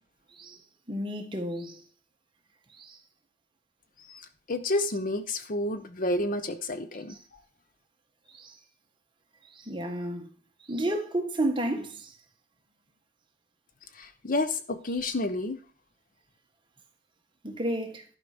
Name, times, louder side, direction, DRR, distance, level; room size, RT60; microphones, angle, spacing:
voice 1, 0.9-1.8 2.8-3.0 7.1-7.2 8.3-8.5 9.6-10.3 10.7-12.1 17.4-18.0, right 1 dB, 25° right, 1.4 m, -31 dB
voice 2, 4.1-7.2 14.0-15.6, left 2 dB, 45° left, 0.7 m, -30 dB
11.5 x 5.7 x 5.0 m
head